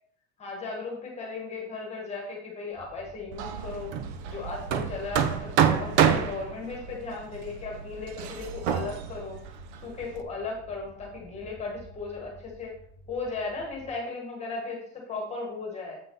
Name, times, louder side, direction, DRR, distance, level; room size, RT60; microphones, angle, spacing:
voice 1, 0.4-3.9 4.3-9.4 9.8-12.7 13.1-16.0, left 3 dB, 20° left, -1 dB, 1.7 m, -36 dB
sound 1, 2.7-13.9, equal, 5° right, 2.7 m, -51 dB
Hammer, 3.3-10.2, right 8 dB, 90° right, 0.9 m, -28 dB
7.8 x 5.7 x 4.0 m, 0.66 s
cardioid pair, 160°, 33 cm